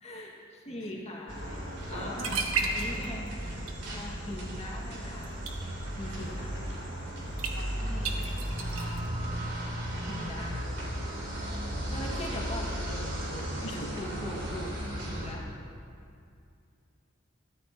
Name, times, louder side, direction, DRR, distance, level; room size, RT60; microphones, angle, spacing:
voice 1, 0.0-2.4 2.7-3.3 3.8-5.4 6.0-6.6 10.0-10.6 11.9-14.7 15.1-15.5, left 1 dB, 30° left, -3 dB, 2.0 m, -41 dB
sound 1, 1.3-15.3, equal, 60° right, 3.3 m, -35 dB
sound 2, 1.9-2.0 2.2-3.3 3.6-4.0 5.2-5.5 7.4-7.5 8.1-9.1, right 4 dB, 85° right, 1.4 m, -32 dB
voice 2, 6.3-6.9 7.5-8.3 11.7-12.2 13.6-14.2, left 2 dB, 80° left, 1 dB, 1.7 m, -46 dB
22.0 x 14.0 x 3.0 m, 2.4 s
head